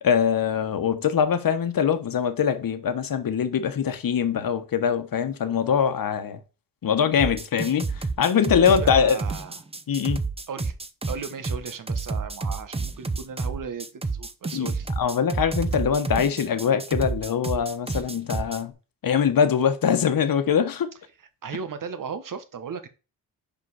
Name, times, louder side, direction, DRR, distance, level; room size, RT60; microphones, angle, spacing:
voice 1, 0.0-6.4 6.8-9.2 9.9-10.2 14.5-18.7 19.0-20.9, left 7 dB, 55° left, 1.2 m, -23 dB
sound 1, 7.2-18.6, right 3 dB, 15° right, 0.8 m, -30 dB
voice 2, 8.6-9.6 10.5-10.8 11.1-14.9 21.4-22.9, right 6 dB, 55° right, 1.2 m, -36 dB
5.1 x 4.9 x 4.8 m
supercardioid pair, 55°, 40 cm